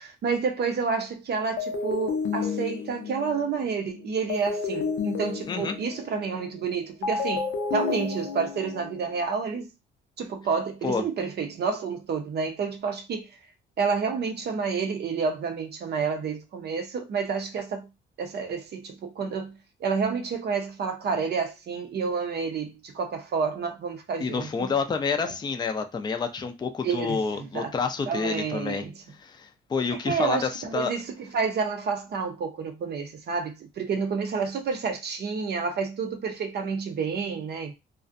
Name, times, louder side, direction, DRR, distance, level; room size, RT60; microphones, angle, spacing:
voice 1, 0.0-9.7 10.2-13.3 13.8-17.9 18.2-19.5 19.8-24.7 25.2-25.3 26.8-27.7 28.1-28.9 30.1-31.1 31.3-37.7, right 5 dB, 55° right, 0.5 m, -29 dB
sound 1, 1.6-9.2, left 5 dB, 80° left, 0.6 m, -31 dB
voice 2, 5.5-5.8 10.8-11.0 24.2-28.9 29.2-30.9, left 5 dB, 20° left, 0.4 m, -28 dB
2.5 x 2.1 x 2.5 m
cardioid pair, 90°, 20 cm